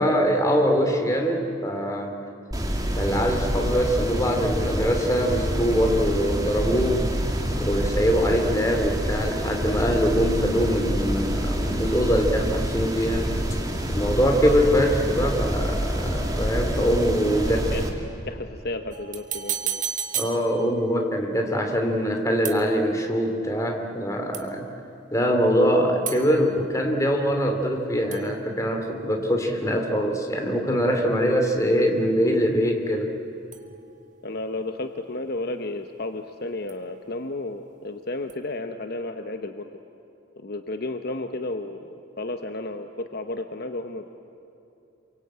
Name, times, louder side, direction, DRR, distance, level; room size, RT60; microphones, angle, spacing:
voice 1, 0.0-2.2 3.0-7.1 7.6-13.3 13.9-17.9 20.1-24.7 25.1-33.1, equal, 15° left, 3 dB, 2.7 m, -23 dB
sound 1, 2.5-17.9, equal, 20° right, 2.5 m, -27 dB
voice 2, 17.4-17.8 18.3-19.8 34.2-39.7 40.4-44.1, left 2 dB, 50° left, 7 dB, 1.0 m, -32 dB
sound 2, 18.9-21.0 22.4-23.1 24.3-24.8 26.1-27.8 28.1-29.3 33.5-34.3 36.7-37.3 38.3-38.4, right 9 dB, 40° right, 1.5 m, -35 dB
27.5 x 23.5 x 8.9 m, 2.8 s
head